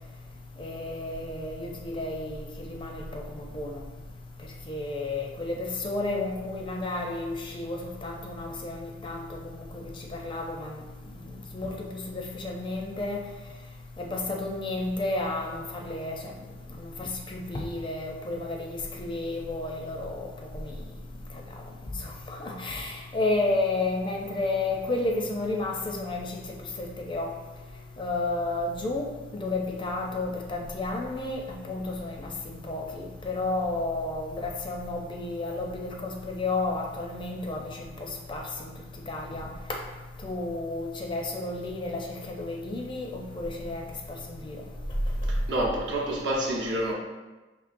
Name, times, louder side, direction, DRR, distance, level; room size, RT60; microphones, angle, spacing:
voice 1, 0.6-3.8 4.7-9.8 10.1-10.8 11.5-13.2 14.0-16.3 16.8-20.3 20.5-20.8 22.0-26.4 26.8-27.3 28.0-29.1 29.3-38.7 39.1-39.8 40.2-43.8 44.3-44.6, left 2 dB, 25° left, 1 dB, 0.4 m, -32 dB
voice 2, 45.3-46.9, right 1 dB, 65° right, -2 dB, 0.8 m, -28 dB
5.2 x 3.0 x 2.5 m, 1.2 s
head